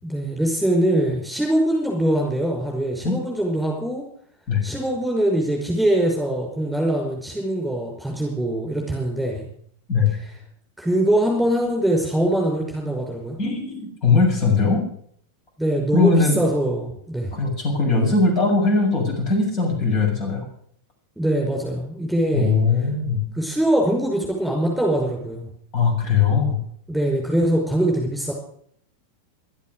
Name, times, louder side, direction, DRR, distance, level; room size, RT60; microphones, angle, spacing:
voice 1, 0.0-4.0 4.6-9.5 10.2-10.4 10.8-13.4 15.6-17.3 21.2-22.5 23.3-25.5 26.9-28.3, right 1 dB, ahead, 0 dB, 5.6 m, -22 dB
voice 2, 13.4-14.8 15.9-16.4 17.3-20.5 22.3-23.2 25.7-26.6, left 4 dB, 35° left, 1 dB, 7.4 m, -20 dB
15.5 x 13.0 x 6.5 m, 0.62 s
figure-of-eight pair, 90°, 0 cm